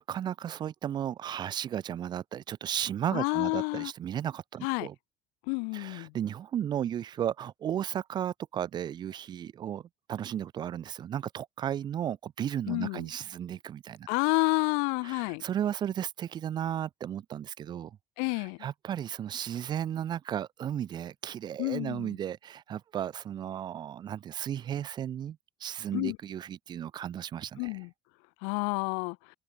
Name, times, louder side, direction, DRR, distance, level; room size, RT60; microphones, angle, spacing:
voice 1, 0.0-4.9 5.7-9.8 10.1-14.1 15.0-18.0 18.4-27.8, right 10 dB, 35° right, 4.5 m, -34 dB
voice 2, 3.1-3.9 4.6-4.9 5.5-6.1 12.7-13.0 14.1-15.4 18.2-18.6 21.6-22.1 25.9-26.2 27.6-27.9 28.4-29.2, left 40 dB or more, 85° left, 1.4 m, -29 dB
cardioid pair, 160°, 13 cm